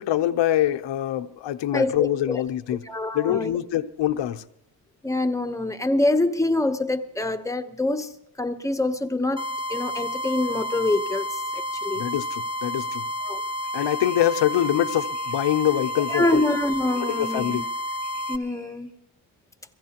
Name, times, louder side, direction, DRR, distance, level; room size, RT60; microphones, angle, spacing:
voice 1, 0.0-2.8 3.1-4.4 11.9-13.1 13.7-16.4 17.0-17.6, left 12 dB, 65° left, 0.7 m, -24 dB
voice 2, 1.7-2.4 2.9-3.6 5.0-8.1 8.4-12.1 13.2-13.4 16.1-17.7 18.3-18.9, left 2 dB, 5° left, 0.8 m, -25 dB
sound 1, 9.4-18.4, equal, 10° right, 1.3 m, -30 dB
sound 2, 13.6-18.9, right 1 dB, 55° right, 4.3 m, -52 dB
23.0 x 15.5 x 2.9 m
cardioid pair, 85°, 47 cm